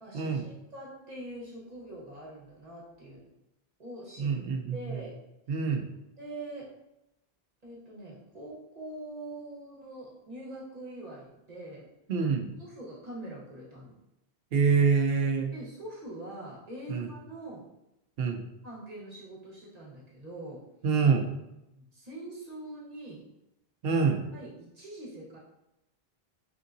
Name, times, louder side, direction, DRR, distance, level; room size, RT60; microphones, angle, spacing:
voice 1, 0.0-3.3 3.8-4.4 4.7-5.2 6.2-6.7 7.6-11.9 12.6-14.0 15.5-17.7 18.6-20.6 21.7-23.2 24.3-25.4, right 1 dB, 40° right, -6 dB, 1.2 m, -43 dB
voice 2, 4.2-5.0 5.5-5.8 12.1-12.5 14.5-15.5 16.9-17.1 18.2-18.4 20.8-21.3 23.8-24.2, right 5 dB, 70° right, 4 dB, 0.8 m, -26 dB
3.7 x 3.5 x 2.6 m, 0.88 s
omnidirectional pair, 1.0 m